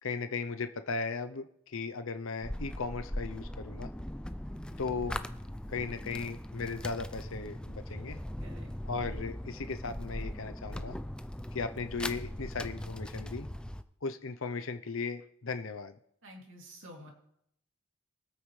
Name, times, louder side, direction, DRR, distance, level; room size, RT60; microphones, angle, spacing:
voice 1, 0.0-3.9 4.8-5.2 5.7-8.2 8.9-11.0 11.5-13.5 14.0-16.0, left 4 dB, 65° left, 8 dB, 0.7 m, -37 dB
sound 1, 2.4-13.8, left 1 dB, 5° left, 0.4 m, -40 dB
voice 2, 16.2-17.1, equal, 60° right, -1 dB, 2.9 m, -50 dB
23.5 x 8.7 x 3.3 m, 0.75 s
head